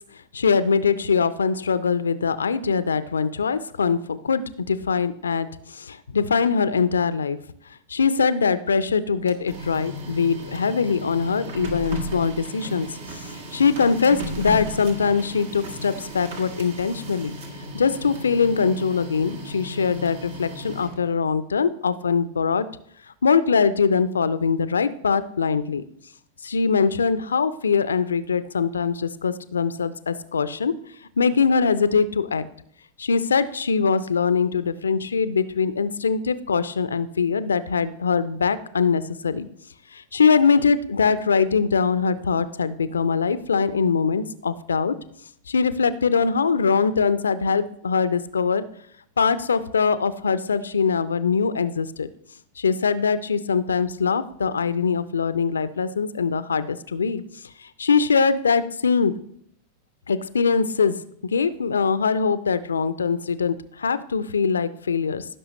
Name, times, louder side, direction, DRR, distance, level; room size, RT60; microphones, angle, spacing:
voice 1, 0.3-7.4 7.9-13.2 13.5-17.3 17.7-22.7 23.2-25.8 26.4-30.7 31.2-32.4 33.0-39.5 39.9-45.0 45.5-48.6 49.2-52.1 52.6-57.2 57.6-59.1 60.1-65.3, left 5 dB, 70° left, 15 dB, 0.5 m, -22 dB
Printer, 9.1-21.2, equal, 55° right, 1.6 m, -35 dB
15.0 x 6.1 x 3.1 m, 0.68 s
figure-of-eight pair, 90°, 0 cm